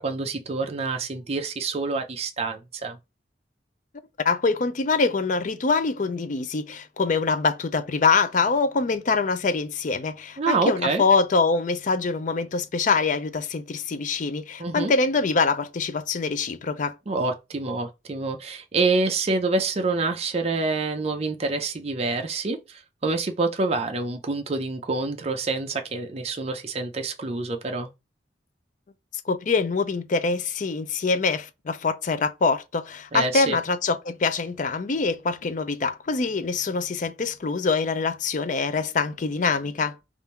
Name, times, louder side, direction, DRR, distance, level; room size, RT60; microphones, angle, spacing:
voice 1, 0.0-3.0 10.4-11.0 14.6-14.9 17.1-27.9 33.1-33.6, right 3 dB, 35° right, 0.5 m, -27 dB
voice 2, 4.2-16.9 29.3-39.9, left 4 dB, 45° left, 0.5 m, -24 dB
3.5 x 2.5 x 4.3 m
head